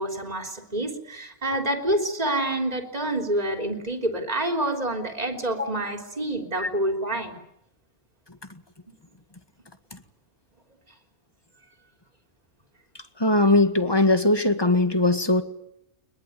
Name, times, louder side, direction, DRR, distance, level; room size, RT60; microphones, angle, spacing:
voice 1, 0.0-7.3, right 1 dB, 30° right, 3.5 m, -27 dB
voice 2, 13.2-15.4, left 2 dB, 20° left, 1.9 m, -20 dB
23.5 x 21.5 x 9.5 m
omnidirectional pair, 1.3 m